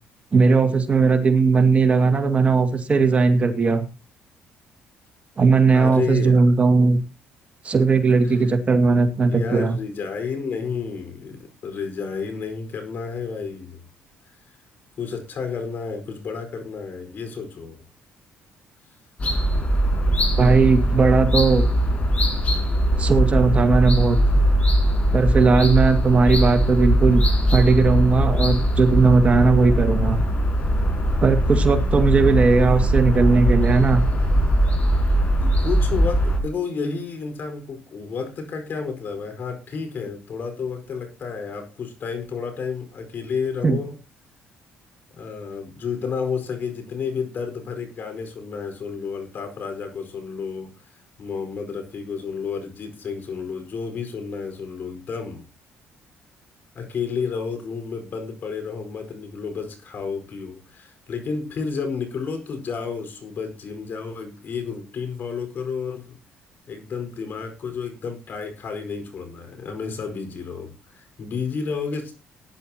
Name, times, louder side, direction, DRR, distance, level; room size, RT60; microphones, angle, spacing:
voice 1, 0.3-3.8 5.4-7.0 7.6-9.8 20.4-21.7 23.0-24.2 25.1-27.2 27.5-30.2 31.2-34.0 43.6-43.8, right 4 dB, 30° right, 7 dB, 2.1 m, -18 dB
voice 2, 5.7-6.6 8.2-8.5 9.3-13.8 15.0-17.8 35.4-43.9 45.1-55.4 56.7-66.2 66.7-72.1, left 5 dB, 50° left, 7 dB, 4.8 m, -31 dB
sound 1, 19.2-36.4, equal, 35° left, 6.5 m, -20 dB
18.5 x 11.0 x 2.9 m, 0.31 s
cardioid pair, 100°, 4 cm